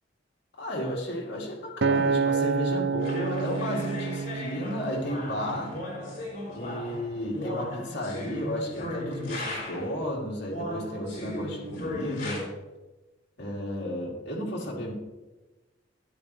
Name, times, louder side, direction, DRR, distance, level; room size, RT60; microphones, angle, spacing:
voice 1, 0.6-5.8 6.5-12.5 13.4-14.9, left 1 dB, 65° left, -2 dB, 2.8 m, -33 dB
Acoustic guitar, 1.8-6.2 6.8-7.0, right 5 dB, 65° right, 0.5 m, -29 dB
sound 1, 3.0-10.0 10.5-12.4, left 2 dB, 45° left, 4.4 m, -36 dB
13.0 x 11.0 x 3.2 m, 1.1 s
head